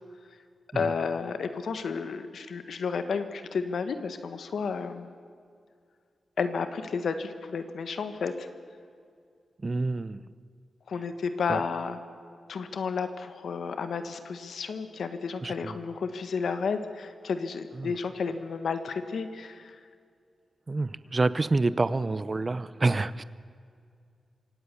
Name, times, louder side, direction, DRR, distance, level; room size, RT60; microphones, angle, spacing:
voice 1, 0.7-5.1 6.4-8.5 10.9-12.0 12.5-19.8, left 5 dB, 75° left, 9 dB, 1.5 m, -32 dB
voice 2, 9.6-10.2 11.5-11.6 15.4-15.8 17.8-17.9 20.7-23.2, right 3 dB, 30° right, 16 dB, 0.7 m, -27 dB
25.5 x 18.0 x 7.0 m, 2.3 s
wide cardioid pair, 115°, 0 cm